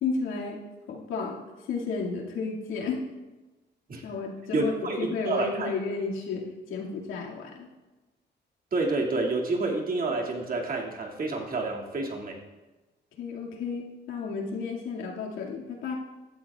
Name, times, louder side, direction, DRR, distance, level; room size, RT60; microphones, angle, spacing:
voice 1, 0.0-0.6 0.9-1.4 1.7-3.0 4.0-7.7 13.2-15.9, left 4 dB, 85° left, -2 dB, 2.3 m, -32 dB
voice 2, 4.5-5.7 8.7-12.4, right 3 dB, 45° right, -1 dB, 2.3 m, -29 dB
16.5 x 12.0 x 2.4 m, 1.2 s
cardioid pair, 90°, 20 cm